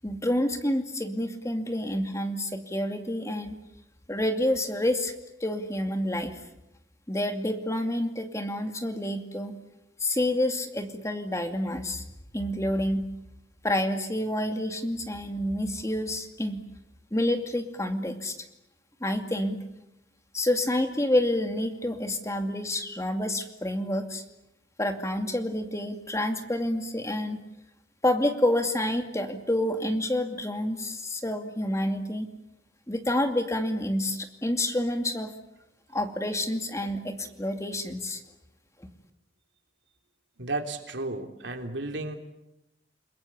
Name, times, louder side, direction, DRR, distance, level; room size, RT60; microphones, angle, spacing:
voice 1, 0.0-3.6 4.1-5.1 5.4-6.4 7.1-9.6 10.0-12.0 12.3-13.1 13.6-16.6 17.1-18.4 19.0-19.6 20.3-24.2 24.8-27.4 28.0-32.3 32.9-35.3 35.9-38.2, left 1 dB, 15° left, 6 dB, 2.4 m, -28 dB
voice 2, 40.4-42.2, right 2 dB, 80° right, 5 dB, 3.6 m, -33 dB
30.0 x 21.5 x 8.7 m, 0.88 s
head